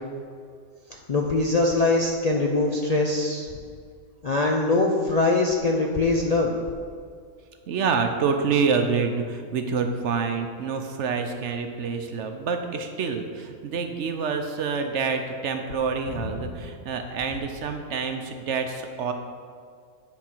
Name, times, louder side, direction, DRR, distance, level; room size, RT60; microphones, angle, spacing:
voice 1, 1.1-3.5 4.2-6.5, left 2 dB, 45° left, -1 dB, 0.5 m, -22 dB
voice 2, 7.7-19.1, right 5 dB, 65° right, 6 dB, 0.9 m, -27 dB
9.1 x 4.3 x 6.0 m, 2.1 s
omnidirectional pair, 1.4 m